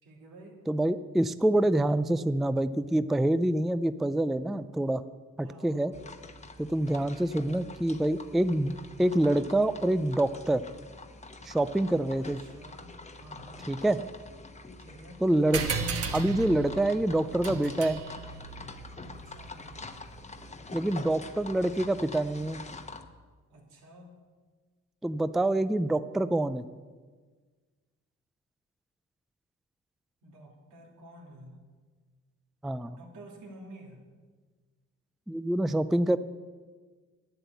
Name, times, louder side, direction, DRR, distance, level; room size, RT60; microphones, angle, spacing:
voice 1, 0.0-0.6 5.4-6.0 6.8-7.3 12.2-13.7 14.8-15.2 19.1-19.9 23.5-24.2 30.2-31.6 32.9-34.0, right 1 dB, 80° right, -1 dB, 2.9 m, -51 dB
voice 2, 0.7-5.0 5.4-5.9 6.6-8.7 9.0-10.6 11.4-12.4 13.7-14.0 15.2-15.7 16.1-18.0 20.7-22.6 25.0-26.6 32.6-33.0 35.3-36.2, right 1 dB, ahead, 14 dB, 0.3 m, -26 dB
sound 1, 5.9-23.0, left 3 dB, 25° left, 1.0 m, -45 dB
sound 2, 15.5-20.5, right 5 dB, 50° right, 1.2 m, -36 dB
10.0 x 7.9 x 8.1 m, 1.5 s
cardioid pair, 90°, 30 cm